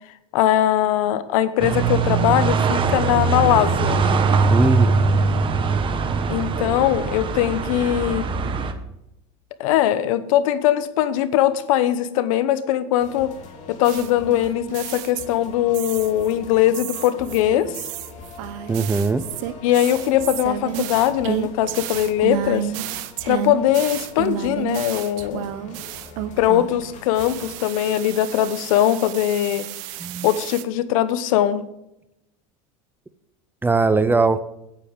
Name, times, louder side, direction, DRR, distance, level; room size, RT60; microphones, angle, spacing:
voice 1, 0.3-4.1 6.3-8.3 9.6-13.3 13.7-17.8 19.6-22.7 23.3-25.5 26.4-29.7 30.2-31.6, left 12 dB, 75° left, 14 dB, 0.9 m, -20 dB
sound 1, 1.6-8.7, right 4 dB, 30° right, 1.1 m, -21 dB
voice 2, 4.4-4.9 18.7-19.2 30.0-30.3 33.6-34.4, right 3 dB, 10° right, 13 dB, 0.6 m, -20 dB
sound 2, 13.0-27.5, left 4 dB, 45° left, 2.6 m, -42 dB
sound 3, 13.8-15.5 15.7-16.3 16.7-26.8 27.2-30.6, right 12 dB, 70° right, 0.8 m, -31 dB
9.1 x 9.0 x 5.1 m, 0.84 s
supercardioid pair, 110°, 17 cm